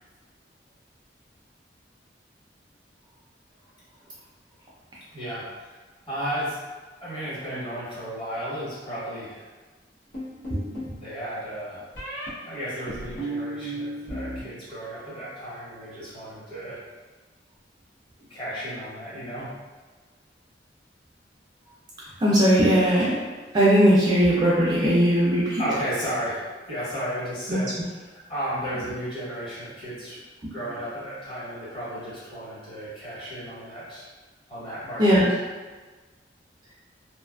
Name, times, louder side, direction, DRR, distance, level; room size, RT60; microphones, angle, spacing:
voice 1, 5.1-5.7 6.1-6.6 7.0-9.4 11.0-11.8 12.4-16.8 18.3-19.5 25.6-34.1 34.5-35.2, equal, 30° left, -10 dB, 1.2 m, -34 dB
sound 1, 10.1-11.0 12.0-12.3 12.9-14.4 14.7-15.3, right 1 dB, 70° left, 1.0 m, -34 dB
voice 2, 22.2-23.2 23.5-25.6 35.0-35.3, equal, 25° right, -7 dB, 0.4 m, -19 dB
2.5 x 2.3 x 2.3 m, 1.3 s
head